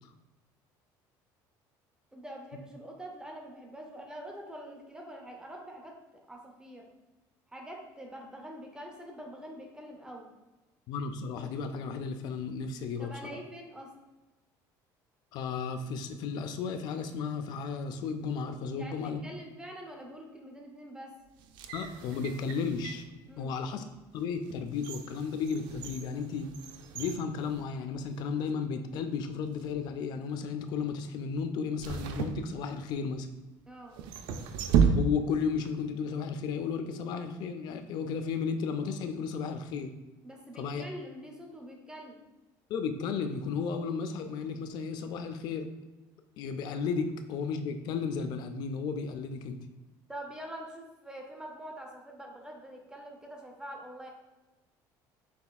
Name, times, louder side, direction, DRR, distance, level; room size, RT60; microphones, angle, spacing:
voice 1, 2.1-6.9 7.5-10.3 13.0-13.9 18.7-21.1 23.3-23.5 33.7-34.0 40.2-42.2 50.1-54.1, right 1 dB, 10° right, 1 dB, 0.6 m, -45 dB
voice 2, 10.9-13.4 15.3-19.2 21.7-23.0 23.4-23.8 24.1-26.5 26.9-33.3 34.9-39.9 40.6-40.8 42.7-45.7 46.4-49.6, left 5 dB, 60° left, 8 dB, 0.4 m, -34 dB
sound 1, 21.4-23.1 23.7-23.9 24.4-28.2 28.5-28.6 29.4-29.8 31.8-33.1 33.9-35.5 35.8-35.9, right 6 dB, 70° right, 0.4 m, -32 dB
5.9 x 3.3 x 2.3 m, 1.1 s
cardioid pair, 140°, 8 cm